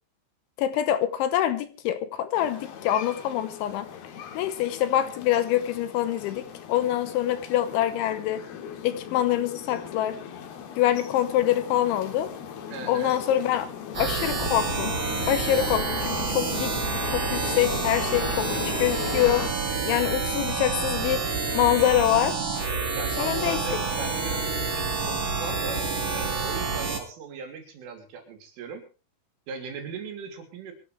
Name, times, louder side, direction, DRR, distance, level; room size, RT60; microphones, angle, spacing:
voice 1, 0.6-3.9 4.3-6.4 6.7-8.4 8.8-10.2 10.8-12.3 12.9-13.7 14.0-15.0 15.3-19.5 19.8-21.2 21.5-22.4 23.2-23.6, left 12 dB, 80° left, 3.2 m, -25 dB
sound 1, 2.3-19.5, left 8 dB, 65° left, 3.4 m, -38 dB
voice 2, 12.7-13.2 22.9-28.9 29.5-30.7, right 5 dB, 90° right, 5.6 m, -38 dB
sound 2, 13.9-27.0, right 4 dB, 40° right, 2.0 m, -28 dB
23.0 x 13.5 x 3.3 m
omnidirectional pair, 5.5 m